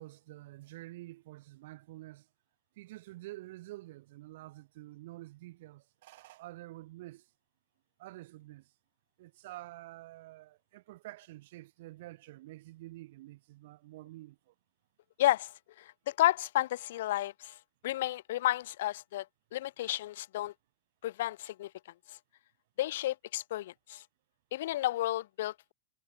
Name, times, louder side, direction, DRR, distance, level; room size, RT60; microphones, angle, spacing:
voice 1, 0.0-2.3 2.8-7.3 8.0-8.7 9.2-14.5, right 18 dB, 55° right, 2.8 m, -48 dB
voice 2, 15.2-15.5 15.8-17.6 17.8-19.3 19.5-20.5 21.0-21.7 22.1-22.2 22.8-24.0 24.5-25.7, left 14 dB, 55° left, 1.1 m, -32 dB
figure-of-eight pair, 90°, 0 cm